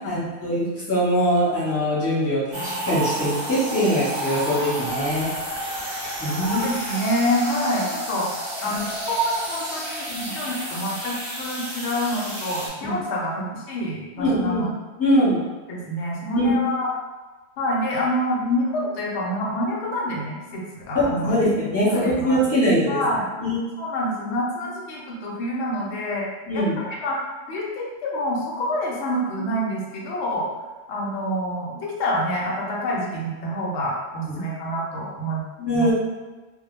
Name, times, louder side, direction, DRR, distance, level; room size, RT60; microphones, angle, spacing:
voice 1, 0.0-5.3 6.2-6.6 10.1-10.3 12.8-12.9 14.2-14.6 15.0-15.4 16.4-16.5 20.9-23.0 23.4-23.6 26.5-26.7 35.6-35.9, equal, 15° left, -11 dB, 0.9 m, -22 dB
sound 1, 2.5-12.7, right 1 dB, 30° right, 0.6 m, -31 dB
voice 2, 6.4-8.3 8.6-14.7 15.7-16.9 17.6-21.4 21.9-22.4 22.9-23.3 23.8-26.3 26.5-27.2 27.5-30.5 30.9-35.4 35.7-35.9, equal, 75° left, -3 dB, 0.9 m, -27 dB
2.2 x 2.1 x 3.0 m, 1.2 s
omnidirectional pair, 1.2 m